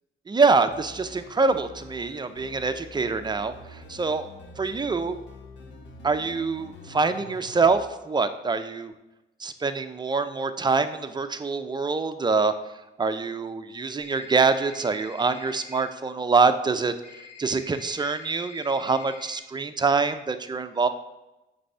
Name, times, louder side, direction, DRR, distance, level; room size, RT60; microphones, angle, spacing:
voice 1, 0.3-4.3 4.6-5.2 6.0-8.9 9.4-12.5 13.0-16.9 17.4-20.9, right 4 dB, 20° right, 10 dB, 0.5 m, -25 dB
sound 1, 0.7-7.9, left 3 dB, 65° left, 1.1 m, -46 dB
sound 2, 14.0-15.8 17.0-19.4, left 5 dB, 45° left, 2.7 m, -47 dB
7.9 x 3.4 x 5.5 m, 0.98 s
cardioid pair, 90°, 20 cm